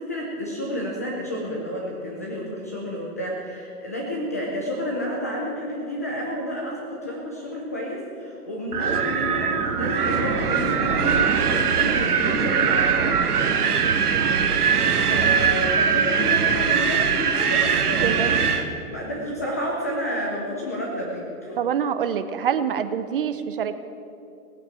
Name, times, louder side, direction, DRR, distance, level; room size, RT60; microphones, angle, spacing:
voice 1, 0.0-13.2 15.1-18.4 18.9-21.6, equal, 10° left, -2 dB, 0.5 m, -30 dB
Wind, 8.7-18.7, right 6 dB, 75° right, 1.8 m, -21 dB
voice 2, 18.0-18.4 21.6-23.8, right 8 dB, 35° right, 11 dB, 0.7 m, -25 dB
18.0 x 8.8 x 8.9 m, 2.7 s
hypercardioid pair, 160°, 46 cm